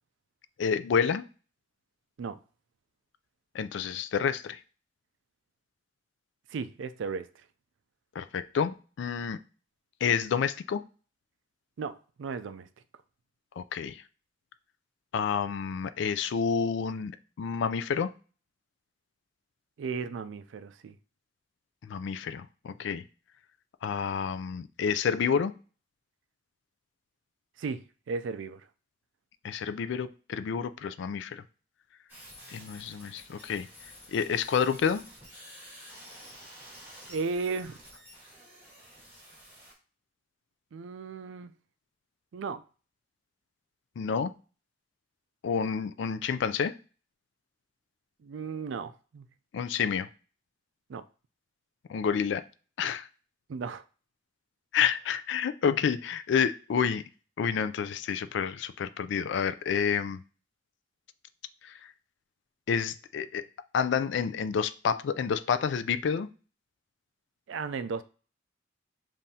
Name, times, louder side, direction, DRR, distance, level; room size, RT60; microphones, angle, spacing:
voice 1, 0.6-1.3 3.5-4.6 8.2-9.4 10.0-10.8 13.6-14.0 15.1-17.1 17.4-18.1 21.8-23.0 23.8-25.5 29.4-31.4 32.5-33.7 34.1-35.0 44.0-44.3 45.4-46.7 49.5-50.1 51.9-52.4 52.8-53.1 54.7-57.0 57.4-60.2 61.6-61.9 62.7-63.4 63.7-66.3, left 7 dB, 70° left, 0.3 m, -29 dB
voice 2, 6.5-7.3 11.8-12.7 19.8-20.9 27.6-28.7 37.1-37.8 40.7-41.5 42.3-42.6 48.2-49.3 50.9-51.1 53.5-53.8 67.5-68.0, right 4 dB, 75° right, 0.4 m, -35 dB
sound 1, 32.1-39.7, equal, 10° right, 2.0 m, -50 dB
7.2 x 2.6 x 2.7 m
head